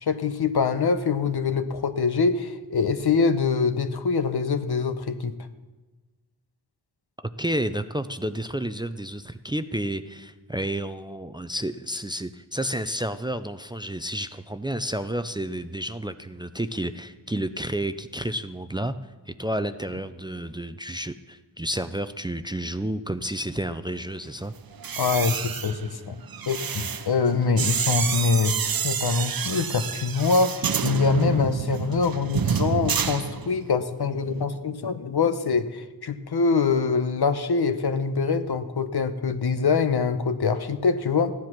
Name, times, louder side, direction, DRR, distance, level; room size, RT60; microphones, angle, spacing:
voice 1, 0.0-5.4 25.0-26.2 26.5-28.6 28.8-41.3, left 5 dB, 70° left, 10 dB, 1.0 m, -24 dB
voice 2, 7.4-18.9 19.3-24.5, right 1 dB, 10° right, 10 dB, 0.5 m, -30 dB
sound 1, 24.7-33.8 34.1-34.4, right 7 dB, 60° right, 0.7 m, -29 dB
15.0 x 10.5 x 6.0 m, 1.2 s
wide cardioid pair, 95°, 40 cm